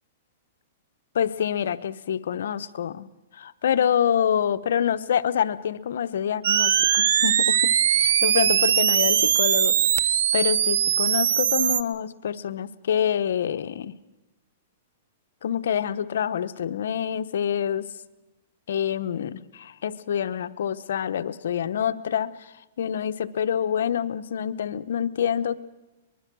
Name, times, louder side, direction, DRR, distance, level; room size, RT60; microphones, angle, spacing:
voice 1, 1.1-3.1 3.3-9.8 10.3-13.9 15.4-17.9 18.7-25.6, left 8 dB, 80° left, 11 dB, 1.0 m, -26 dB
sound 1, 6.4-11.8, right 9 dB, 75° right, 1.0 m, -21 dB
23.5 x 21.0 x 6.2 m, 1.0 s
hypercardioid pair, 150°, 0 cm